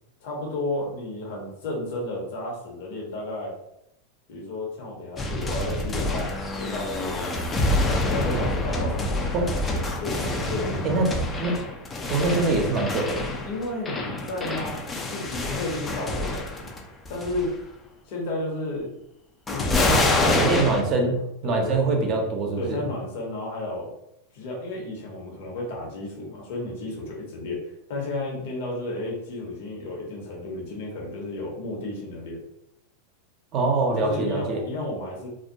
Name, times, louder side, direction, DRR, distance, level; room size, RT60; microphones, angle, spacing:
voice 1, 0.2-3.5 4.3-7.4 7.8-11.0 13.4-16.7 17.1-17.5 18.1-18.9 19.5-21.9 22.6-23.9 24.3-32.4 34.0-35.3, left 2 dB, 65° left, -2 dB, 1.0 m, -33 dB
sound 1, 5.2-16.8 17.1-17.5 19.5-20.8, left 2 dB, 20° left, 0.4 m, -27 dB
voice 2, 10.8-11.6 12.1-13.2 19.9-20.0 20.4-21.2 21.4-22.8 33.5-34.6, right 3 dB, 40° right, 2 dB, 0.6 m, -24 dB
2.3 x 2.1 x 2.7 m, 0.80 s
hypercardioid pair, 115°, 0 cm